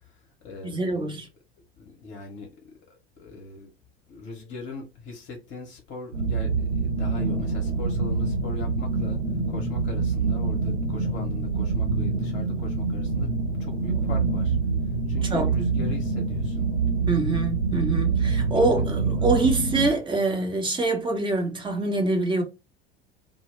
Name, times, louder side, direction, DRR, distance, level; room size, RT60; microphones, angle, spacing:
voice 1, 0.0-1.2 1.8-3.7 4.1-9.2 9.5-13.3 13.6-14.6 15.1-16.7 18.5-19.4, left 4 dB, 40° left, 0.9 m, -41 dB
voice 2, 0.6-1.3 15.3-15.5 17.1-22.4, right 2 dB, 15° right, 0.9 m, -25 dB
sound 1, 6.1-19.9, right 4 dB, 65° right, 0.9 m, -26 dB
2.1 x 2.1 x 3.2 m
figure-of-eight pair, 75°, 29 cm